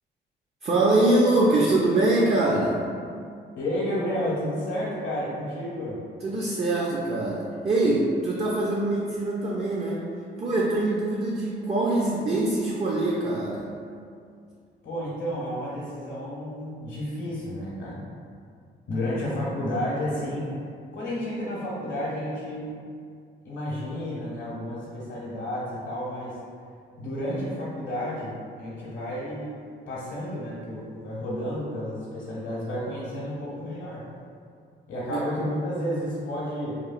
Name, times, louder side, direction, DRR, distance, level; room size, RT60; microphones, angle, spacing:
voice 1, 0.6-2.8 6.2-10.0 10.4-13.7 35.1-35.2, right 2 dB, 30° right, -4 dB, 0.4 m, -23 dB
voice 2, 3.6-6.0 14.8-18.0 18.9-20.6 20.9-22.8 23.4-26.4 27.0-29.6 29.9-34.1 34.9-36.7, equal, 70° left, -7 dB, 0.7 m, -31 dB
2.9 x 2.3 x 2.4 m, 2.3 s
cardioid pair, 90°, 20 cm